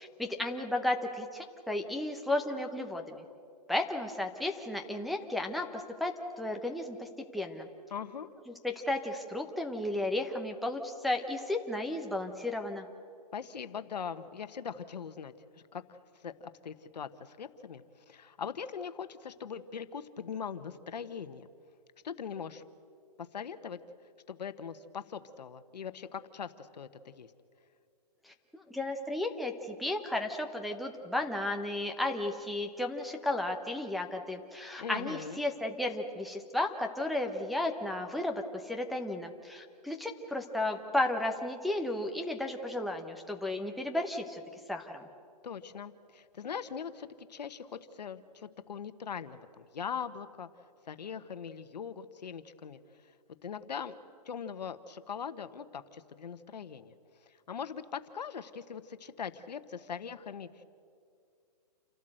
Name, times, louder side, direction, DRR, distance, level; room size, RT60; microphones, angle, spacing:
voice 1, 0.0-3.2 3.7-7.7 8.6-12.9 28.2-44.4 44.7-45.1, left 1 dB, ahead, 2 dB, 0.8 m, -34 dB
voice 2, 7.9-8.3 13.3-21.5 22.0-22.6 23.2-23.8 24.3-27.3 34.8-35.4 45.4-50.5 50.9-52.8 53.4-53.9 54.2-56.9 57.5-60.6, left 7 dB, 80° left, 11 dB, 1.2 m, -41 dB
29.0 x 12.0 x 7.7 m, 2.3 s
hypercardioid pair, 155°, 21 cm